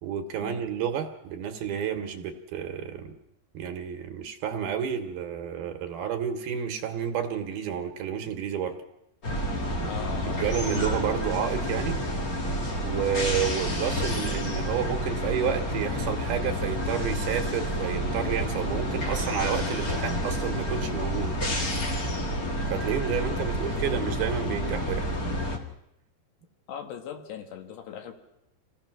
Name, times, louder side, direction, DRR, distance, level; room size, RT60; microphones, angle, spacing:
voice 1, 0.0-3.1 3.5-8.8 10.4-12.0 12.8-21.4 22.7-25.1, right 8 dB, 70° right, 6 dB, 2.9 m, -30 dB
sound 1, 9.2-25.6, equal, 85° left, 0.7 m, -29 dB
voice 2, 9.8-10.5 26.7-28.1, left 9 dB, 70° left, 5 dB, 3.6 m, -39 dB
26.5 x 17.0 x 6.1 m, 0.84 s
omnidirectional pair, 5.0 m